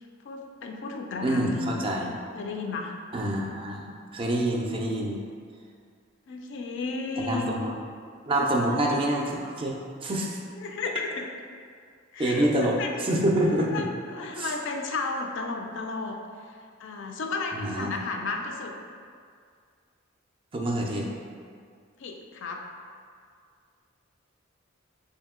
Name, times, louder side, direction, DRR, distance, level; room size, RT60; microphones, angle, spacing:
voice 1, 0.2-1.7 2.3-3.0 6.3-7.6 8.7-9.0 10.6-11.3 12.1-12.5 12.8-13.0 13.7-16.2 16.8-18.8 22.0-22.6, left 3 dB, 60° left, 2 dB, 0.4 m, -33 dB
voice 2, 1.2-2.1 3.1-5.2 7.2-7.7 8.3-9.7 10.0-10.4 12.2-13.8 14.4-14.5 17.5-17.9 20.5-21.1, right 1 dB, 25° right, 0 dB, 0.3 m, -26 dB
3.4 x 2.7 x 3.6 m, 2.2 s
head